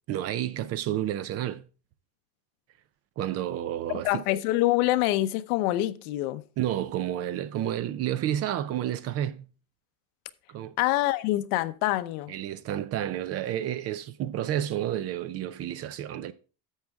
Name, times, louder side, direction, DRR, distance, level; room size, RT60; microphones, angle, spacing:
voice 1, 0.1-1.6 3.2-4.2 6.6-9.5 10.5-10.7 12.3-16.3, right 11 dB, 35° right, 0.5 m, -30 dB
voice 2, 3.9-6.4 10.8-12.3, left 16 dB, 75° left, 0.9 m, -26 dB
11.0 x 7.4 x 3.5 m
cardioid pair, 155°, 44 cm